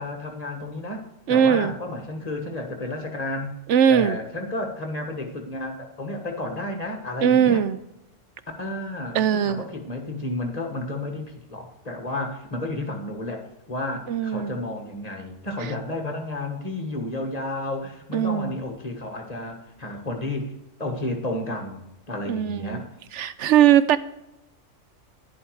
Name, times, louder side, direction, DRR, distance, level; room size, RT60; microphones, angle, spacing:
voice 1, 0.0-3.5 3.9-7.6 8.6-20.5 20.8-22.9, left 2 dB, 30° left, 3 dB, 1.8 m, -32 dB
voice 2, 1.3-1.7 3.7-4.2 7.2-7.8 9.1-9.6 14.1-14.5 18.1-18.6 22.3-22.8 23.1-24.0, right 9 dB, 70° right, 14 dB, 0.9 m, -20 dB
11.0 x 11.0 x 4.8 m, 0.88 s
omnidirectional pair, 1.3 m